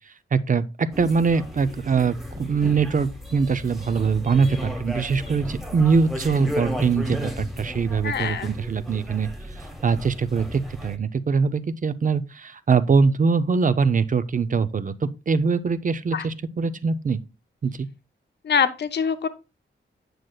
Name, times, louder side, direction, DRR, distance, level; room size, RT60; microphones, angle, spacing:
voice 1, 0.3-9.3 9.6-17.2 17.6-17.9, right 5 dB, 40° right, 0.5 m, -23 dB
sound 1, 0.9-11.0, left 1 dB, ahead, 1.1 m, -34 dB
voice 2, 8.0-8.5 16.1-16.3 18.4-19.3, left 7 dB, 55° left, 0.6 m, -24 dB
9.1 x 6.4 x 2.3 m
wide cardioid pair, 130°, 21 cm